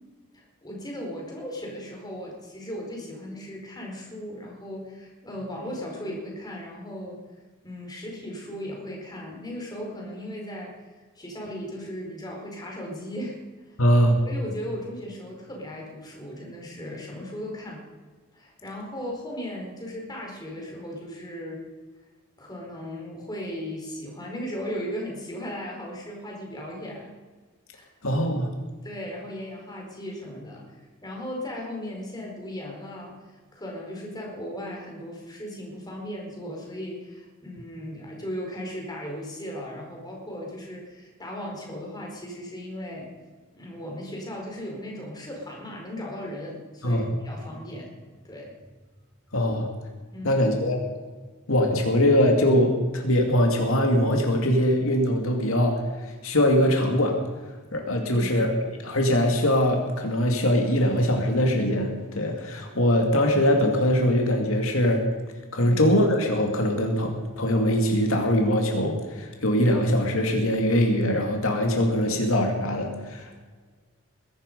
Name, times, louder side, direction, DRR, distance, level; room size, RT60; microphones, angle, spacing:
voice 1, 0.3-7.2 7.6-10.7 11.1-13.4 13.7-13.8 14.2-17.8 18.3-21.6 22.4-27.1 27.7-27.9 28.8-43.1 43.5-47.9 48.2-48.7 50.1-50.4 58.0-58.3 65.5-65.8, equal, 20° left, -1 dB, 4.6 m, -37 dB
voice 2, 13.8-14.2 28.0-28.5 46.8-47.1 49.3-49.7 50.2-50.8 51.5-55.8 56.2-57.2 57.7-65.1 65.5-73.4, equal, 75° left, 2 dB, 2.5 m, -22 dB
21.0 x 12.0 x 5.4 m, 1.4 s
head